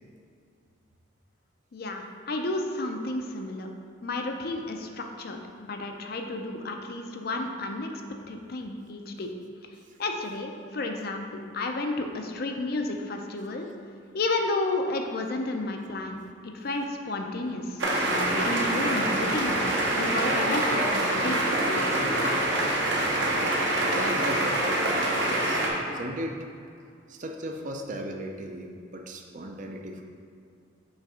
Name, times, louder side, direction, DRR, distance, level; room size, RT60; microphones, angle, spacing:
voice 1, 1.7-3.7 4.0-8.0 8.3-9.3 10.0-13.7 14.1-19.6 20.0-22.6, left 2 dB, 50° left, 4 dB, 0.5 m, -32 dB
sound 1, 17.8-25.7, right 1 dB, 65° right, 0.9 m, -25 dB
voice 2, 23.9-25.6 25.9-26.4 27.1-30.0, right 1 dB, 40° right, 2 dB, 0.5 m, -36 dB
6.4 x 3.4 x 4.8 m, 2.4 s
head